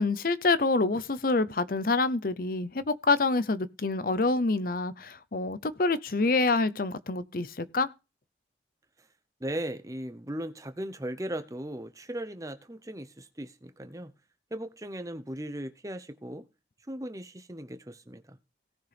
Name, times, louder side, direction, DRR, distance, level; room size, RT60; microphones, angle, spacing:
voice 1, 0.0-7.9, left 3 dB, 50° left, 0.7 m, -27 dB
voice 2, 9.4-14.1 14.5-16.4 16.9-18.4, right 1 dB, 20° right, 0.8 m, -37 dB
17.5 x 6.5 x 3.4 m
head